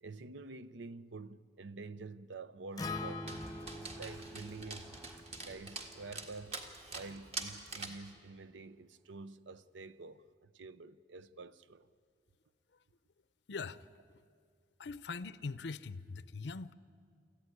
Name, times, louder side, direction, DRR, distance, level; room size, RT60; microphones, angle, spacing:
voice 1, 0.0-5.0 5.5-6.7 6.9-11.9, right 3 dB, 85° right, 0.7 m, -48 dB
Acoustic guitar, 2.8-7.0, left 3 dB, 20° left, 0.7 m, -45 dB
sound 1, 2.8-7.2, equal, 15° right, 1.8 m, -57 dB
Dog, 3.3-8.1, right 3 dB, 35° right, 1.8 m, -45 dB
voice 2, 13.5-13.8 14.8-16.7, left 4 dB, 70° left, 0.6 m, -42 dB
24.0 x 15.0 x 9.7 m
head